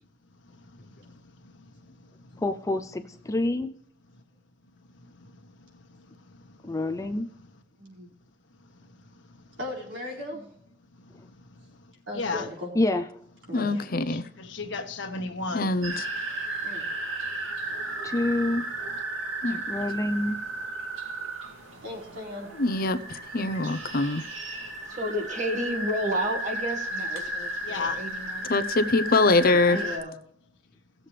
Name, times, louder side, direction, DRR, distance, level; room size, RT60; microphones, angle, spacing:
voice 1, 2.4-3.8 6.6-7.3 12.8-13.1 18.0-18.7 19.7-20.4, left 1 dB, 15° left, 8 dB, 0.5 m, -27 dB
voice 2, 9.6-10.4 12.1-12.7 13.5-13.7 16.6-16.8 21.8-22.5 29.7-30.1, left 2 dB, 70° right, -2 dB, 4.3 m, -36 dB
voice 3, 12.1-12.5 13.7-13.8 14.1-15.7 27.6-28.0, left 4 dB, 65° left, 5 dB, 1.4 m, -33 dB
voice 4, 13.5-14.3 15.5-16.1 19.4-19.6 22.5-24.2 28.4-29.8, left 2 dB, 50° left, 11 dB, 0.7 m, -24 dB
sound 1, 15.8-30.0, right 2 dB, 90° right, 2.3 m, -34 dB
voice 5, 24.9-28.5 29.4-29.8, equal, 40° right, 4 dB, 1.8 m, -31 dB
17.5 x 7.5 x 3.3 m, 0.62 s
head